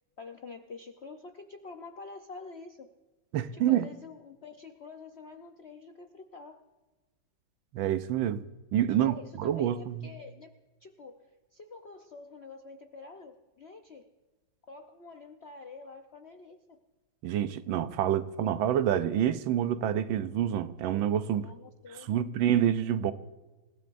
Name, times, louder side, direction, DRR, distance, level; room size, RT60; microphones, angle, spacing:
voice 1, 0.2-2.9 3.5-6.6 8.9-14.1 14.7-16.8 21.3-22.5, left 4 dB, 55° left, 0.7 m, -47 dB
voice 2, 3.3-3.9 7.7-8.4 8.7-10.1 17.2-21.5 22.1-23.1, right 10 dB, 85° right, 1.5 m, -27 dB
28.0 x 16.0 x 2.6 m
omnidirectional pair, 2.1 m